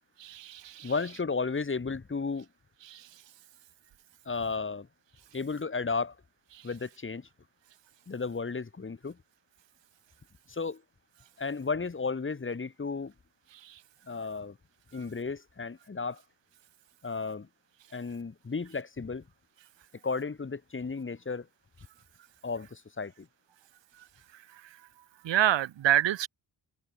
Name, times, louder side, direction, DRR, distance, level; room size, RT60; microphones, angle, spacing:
voice 1, 0.2-0.9 2.9-3.0 25.2-26.3, right 12 dB, 80° right, 2.2 m, -27 dB
voice 2, 0.8-2.5 4.3-4.9 5.3-6.2 6.6-7.3 8.1-9.2 10.5-10.8 11.4-13.1 14.1-14.6 14.9-16.2 17.0-17.5 17.9-19.2 20.0-21.5 22.4-23.3, left 4 dB, 30° left, 5.6 m, -33 dB
cardioid pair, 130°, 43 cm